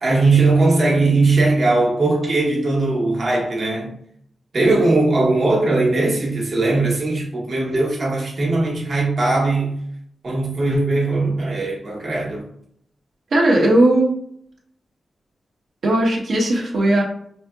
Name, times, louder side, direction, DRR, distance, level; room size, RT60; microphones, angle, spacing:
voice 1, 0.0-3.9 4.5-9.8 10.2-12.4, right 2 dB, 50° right, 1.0 m, -19 dB
voice 2, 13.3-14.1 15.8-17.0, right 1 dB, 75° right, 1.0 m, -17 dB
4.9 x 2.8 x 2.3 m
wide cardioid pair, 125°, 0 cm